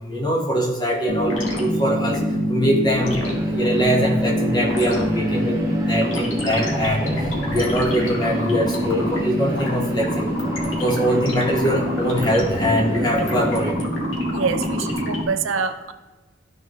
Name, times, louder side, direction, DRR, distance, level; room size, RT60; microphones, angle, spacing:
voice 1, 0.0-2.2 2.5-3.2 3.4-5.6 5.9-7.1 7.5-10.3 10.8-13.8, equal, 20° left, -1 dB, 1.3 m, -22 dB
sound 1, 1.1-15.2, equal, 85° left, 1.8 m, -25 dB
sound 2, 2.9-13.7, right 1 dB, 15° right, 1.1 m, -34 dB
voice 2, 12.9-13.3 14.3-15.9, right 5 dB, 85° right, 9 dB, 0.6 m, -26 dB
13.0 x 4.7 x 3.1 m, 1.2 s
head